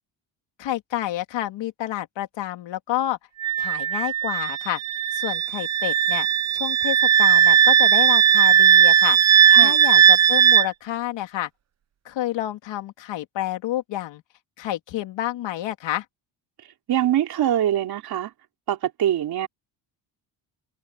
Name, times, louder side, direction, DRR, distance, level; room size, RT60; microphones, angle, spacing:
voice 1, 0.6-3.2 3.6-4.8 5.1-6.3 6.5-11.5 12.0-14.2 14.6-16.0, left 13 dB, 75° left, 3.2 m, -29 dB
Wind instrument woodwind instrument, 3.4-10.7, right 9 dB, 35° right, 0.8 m, -17 dB
voice 2, 16.9-18.3 18.7-19.5, right 11 dB, 55° right, 3.8 m, -23 dB
cardioid pair, 175°, 44 cm